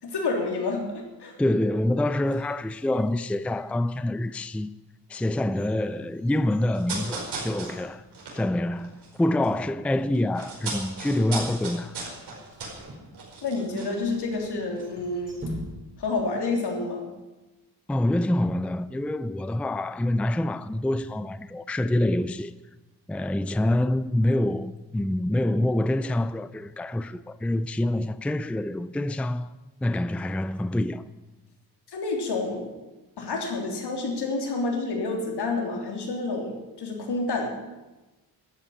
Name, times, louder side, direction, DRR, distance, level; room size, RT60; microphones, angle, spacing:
voice 1, 0.0-1.4 13.4-15.4 16.0-17.1 31.9-32.7 33.2-37.5, left 3 dB, 75° left, 3.5 m, -29 dB
voice 2, 1.4-4.7 5.1-8.0 8.3-12.0 17.9-22.5 23.1-29.5 29.8-31.1, left 1 dB, 5° left, 0.4 m, -26 dB
sound 1, 2.1-3.8 4.4-4.5 5.1-8.9 9.2-9.3 10.1-10.5 12.5-13.8 14.6-16.2 16.4-16.5, equal, 30° right, 5.8 m, -44 dB
sound 2, 6.7-9.6 9.9-14.5 14.8-14.9, right 3 dB, 80° right, 5.0 m, -37 dB
13.0 x 8.9 x 10.0 m
wide cardioid pair, 105°, 40 cm